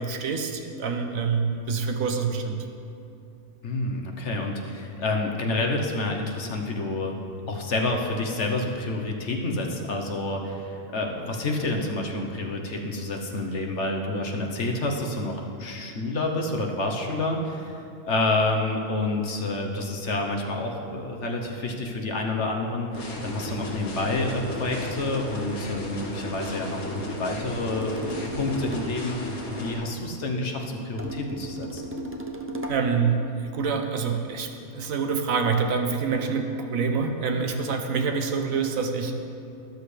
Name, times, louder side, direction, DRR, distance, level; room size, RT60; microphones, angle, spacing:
voice 1, 0.0-2.6 32.7-33.2 33.5-39.1, right 5 dB, 70° right, 5 dB, 1.2 m, -26 dB
voice 2, 3.6-7.1 7.5-31.9, left 2 dB, 55° left, 2 dB, 1.3 m, -29 dB
sound 1, 22.9-29.7, left 1 dB, 85° left, 1.8 m, -34 dB
sound 2, 27.7-29.0 31.0-32.9, right 1 dB, 15° right, 0.4 m, -35 dB
13.0 x 12.0 x 3.3 m, 2.6 s
omnidirectional pair, 1.5 m